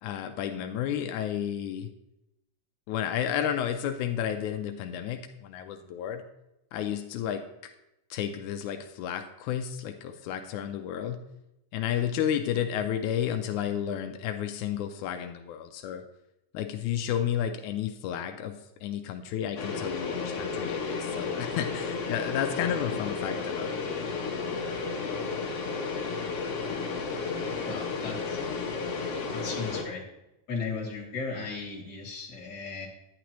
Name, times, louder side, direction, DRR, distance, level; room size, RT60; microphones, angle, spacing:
voice 1, 0.0-1.9 2.9-6.2 6.7-7.4 8.1-11.2 11.7-16.0 16.5-23.9, left 9 dB, 90° left, 6 dB, 2.1 m, -32 dB
sound 1, 19.6-29.8, left 4 dB, 60° left, 2.3 m, -33 dB
voice 2, 27.7-28.4 29.3-30.0 30.5-32.9, left 4 dB, 40° left, -2 dB, 2.7 m, -36 dB
10.0 x 9.9 x 3.0 m, 0.89 s
omnidirectional pair, 3.4 m